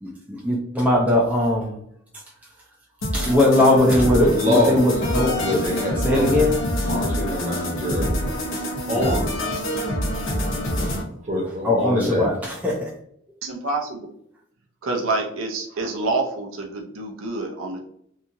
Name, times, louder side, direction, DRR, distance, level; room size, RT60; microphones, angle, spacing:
voice 1, 0.0-1.8 3.1-5.6 6.0-6.6 9.0-9.1 11.6-12.9, left 1 dB, 5° right, -3 dB, 0.4 m, -20 dB
sound 1, 3.0-11.0, equal, 70° left, 0.7 m, -26 dB
voice 2, 4.1-4.9 5.4-6.5 6.8-8.4 8.9-9.4 10.5-10.8 11.2-12.3, left 1 dB, 35° right, -2 dB, 0.8 m, -25 dB
voice 3, 13.4-14.1 14.8-17.8, right 3 dB, 80° right, 1 dB, 0.5 m, -27 dB
2.8 x 2.4 x 2.5 m, 0.68 s
head